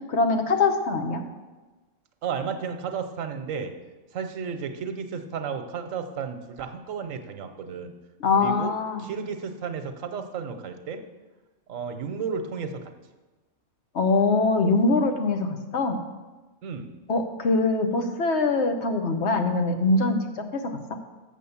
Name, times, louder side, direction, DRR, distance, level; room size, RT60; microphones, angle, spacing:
voice 1, 0.1-1.2 8.2-9.0 13.9-16.0 17.1-20.8, left 3 dB, 60° left, 5 dB, 1.2 m, -23 dB
voice 2, 2.2-3.7 4.1-7.9 8.4-8.7 9.0-11.0 11.7-12.9 16.6-16.9, right 6 dB, 90° right, 8 dB, 1.2 m, -33 dB
7.3 x 6.3 x 7.1 m, 1.2 s
omnidirectional pair, 1.3 m